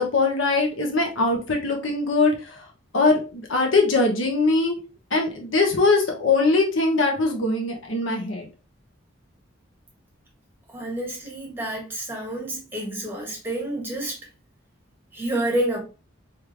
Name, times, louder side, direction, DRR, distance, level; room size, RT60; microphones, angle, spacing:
voice 1, 0.0-2.6 2.9-4.8 5.1-8.5, left 3 dB, 70° left, 1.0 m, -21 dB
voice 2, 10.7-14.2 15.1-15.8, right 1 dB, 10° right, 1.6 m, -29 dB
3.6 x 3.3 x 3.2 m
head